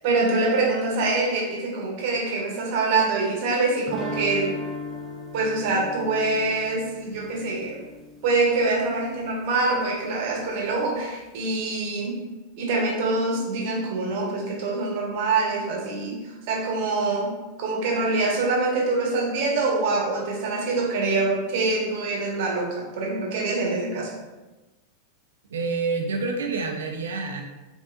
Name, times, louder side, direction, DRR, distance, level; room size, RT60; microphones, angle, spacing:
voice 1, 0.0-4.5 5.3-7.8 8.2-12.2 12.6-16.2 16.5-17.3 17.6-24.1, right 3 dB, 45° right, -2 dB, 1.0 m, -25 dB
sound 1, 3.9-8.8, left 1 dB, 10° right, 0.6 m, -36 dB
voice 2, 25.5-27.4, right 4 dB, 65° right, 2 dB, 0.4 m, -27 dB
5.2 x 2.6 x 2.4 m, 1.1 s
figure-of-eight pair, 90°, 0 cm